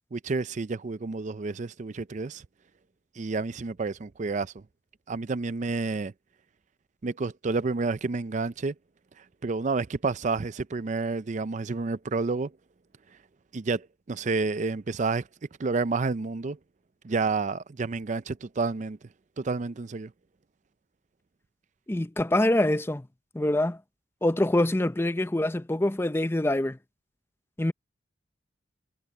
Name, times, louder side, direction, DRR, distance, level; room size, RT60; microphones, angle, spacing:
voice 1, 0.1-2.4 3.2-4.6 5.1-6.1 7.0-8.7 9.4-12.5 13.5-15.3 15.6-16.6 17.0-19.0 19.4-20.1, right 3 dB, 40° right, 0.5 m, -29 dB
voice 2, 21.9-23.1 23.3-23.8 24.2-26.8 27.6-27.7, left 1 dB, 15° left, 0.5 m, -25 dB
head